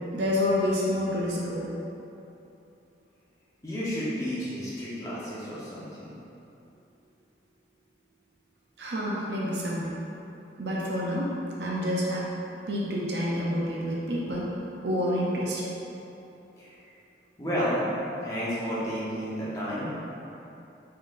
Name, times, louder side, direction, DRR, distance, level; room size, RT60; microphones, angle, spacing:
voice 1, 0.0-1.7 8.8-9.9 10.6-11.3 11.6-12.3 12.7-14.5 14.8-15.7, left 1 dB, 65° right, -5 dB, 0.6 m, -28 dB
voice 2, 3.6-6.1 16.6-16.7 17.4-17.8 18.2-19.9, equal, 20° left, -9 dB, 0.9 m, -31 dB
4.1 x 3.7 x 2.5 m, 2.9 s
head